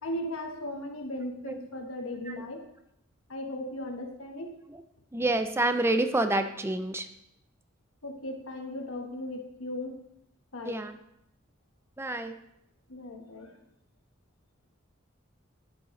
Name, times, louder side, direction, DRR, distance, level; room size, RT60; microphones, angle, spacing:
voice 1, 0.0-2.6 3.3-4.5 8.0-10.0 10.5-10.8 12.9-13.6, left 1 dB, 90° left, 3 dB, 1.3 m, -37 dB
voice 2, 5.1-7.1 10.6-10.9 12.0-12.4, right 2 dB, 10° right, 8 dB, 0.5 m, -28 dB
10.5 x 7.5 x 3.2 m, 0.80 s
head